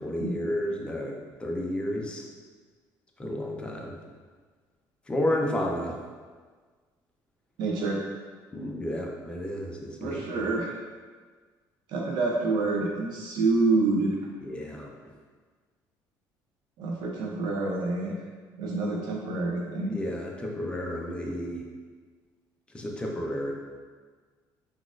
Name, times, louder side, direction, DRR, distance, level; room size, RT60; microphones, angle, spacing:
voice 1, 0.0-2.3 3.2-4.0 5.1-6.0 8.5-10.3 14.4-14.9 19.9-21.6 22.7-23.5, left 1 dB, 15° left, 0 dB, 0.4 m, -31 dB
voice 2, 7.6-8.0 10.0-10.8 11.9-14.2 16.8-18.1 18.6-20.0, right 3 dB, 70° right, -1 dB, 0.4 m, -27 dB
3.9 x 2.4 x 2.3 m, 1.5 s
cardioid pair, 125°, 8 cm